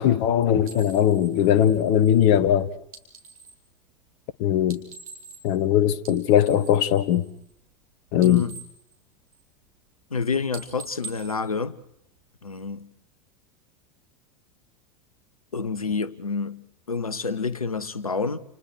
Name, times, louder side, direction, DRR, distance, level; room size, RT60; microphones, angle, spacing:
voice 1, 0.0-2.7 4.4-4.8 5.4-7.2 8.1-8.4, left 10 dB, 45° left, 1.6 m, -20 dB
sound 1, 0.7-3.7 4.6-5.7 5.9-7.8 8.1-9.7 10.0-10.2 10.5-12.3, right 4 dB, 70° right, 4.5 m, -45 dB
voice 2, 8.2-8.6 10.1-11.8 12.4-12.9 15.5-18.4, left 4 dB, 80° left, 1.2 m, -28 dB
30.0 x 29.5 x 4.8 m
figure-of-eight pair, 85°, 18 cm